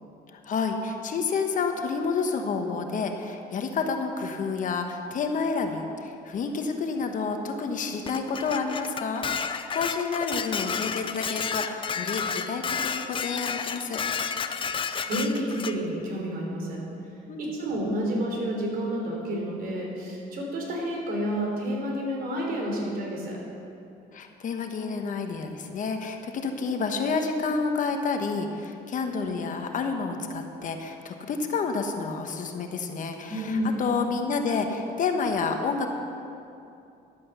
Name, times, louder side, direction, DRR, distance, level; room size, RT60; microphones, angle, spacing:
voice 1, 0.3-14.0 17.3-17.5 24.1-35.9, left 4 dB, 50° left, 5 dB, 1.2 m, -29 dB
Dishes pots and pans, 8.1-15.8, left 6 dB, 30° left, 0.5 m, -31 dB
voice 2, 15.0-16.8 17.4-23.4 33.3-33.8, equal, 60° right, -2 dB, 3.5 m, -30 dB
11.5 x 8.6 x 6.9 m, 2.7 s
cardioid pair, 110°, 17 cm